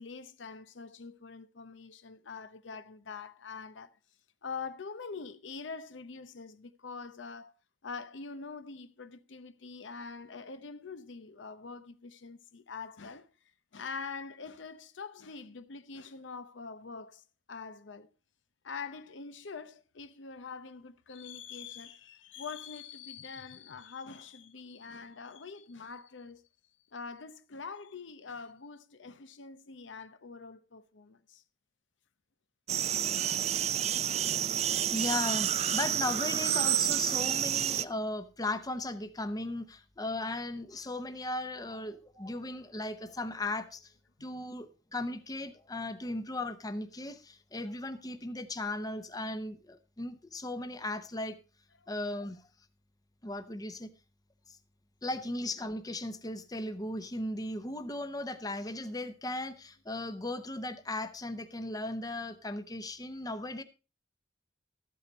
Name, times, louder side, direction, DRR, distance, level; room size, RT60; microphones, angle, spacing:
voice 1, 0.0-4.0 4.4-7.5 7.8-13.3 13.7-17.2 17.5-18.1 18.6-26.5 26.9-31.4 44.2-44.5 51.8-51.9, left 5 dB, 80° left, 0.7 m, -44 dB
sound 1, 32.7-37.9, right 10 dB, 35° right, 0.4 m, -29 dB
voice 2, 34.9-43.9 44.2-51.4 51.9-52.4 53.2-53.9 54.5-54.6 55.0-63.6, left 2 dB, 20° left, 0.8 m, -37 dB
13.0 x 8.5 x 4.0 m
head